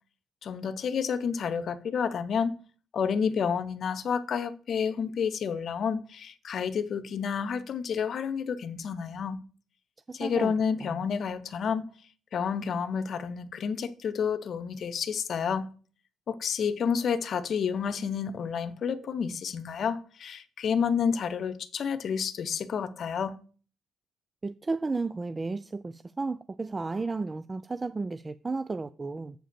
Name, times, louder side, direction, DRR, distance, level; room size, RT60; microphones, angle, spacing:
voice 1, 0.4-2.6 2.9-9.4 10.1-11.8 12.3-15.7 16.3-23.4, left 6 dB, 60° left, 0.8 m, -30 dB
voice 2, 10.1-10.5 24.4-25.8 26.2-29.3, right 3 dB, 30° right, 0.4 m, -32 dB
7.5 x 5.0 x 6.8 m
supercardioid pair, 60°, 0 cm